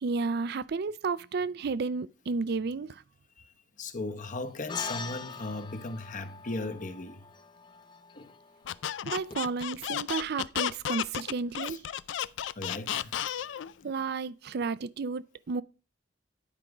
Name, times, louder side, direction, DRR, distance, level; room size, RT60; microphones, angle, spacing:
voice 1, 0.0-3.0 9.1-11.8 13.8-15.6, right 4 dB, 60° right, 0.4 m, -32 dB
voice 2, 3.8-7.3 8.1-8.3 11.6-11.8 12.5-13.3 13.7-13.8, left 2 dB, 45° left, 0.9 m, -37 dB
sound 1, 4.7-9.3, left 5 dB, 25° left, 0.6 m, -43 dB
Squeak, 8.7-13.7, left 10 dB, 85° left, 0.4 m, -33 dB
10.0 x 5.2 x 4.8 m
head